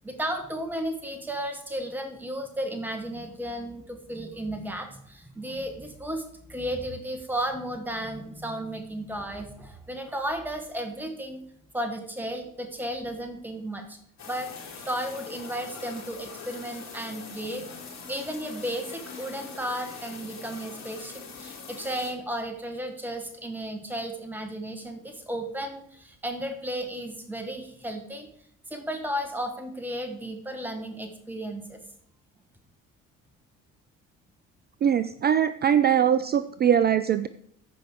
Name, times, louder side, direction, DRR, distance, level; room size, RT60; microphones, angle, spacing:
voice 1, 0.0-11.4 11.7-14.0 14.3-17.7 18.1-28.3 28.7-31.8, right 1 dB, 5° right, 6 dB, 1.5 m, -34 dB
sound 1, 14.2-22.1, left 5 dB, 45° left, 4.0 m, -42 dB
voice 2, 34.8-37.3, right 9 dB, 25° right, 14 dB, 0.4 m, -22 dB
14.5 x 5.4 x 4.6 m, 0.68 s
figure-of-eight pair, 50°, 39 cm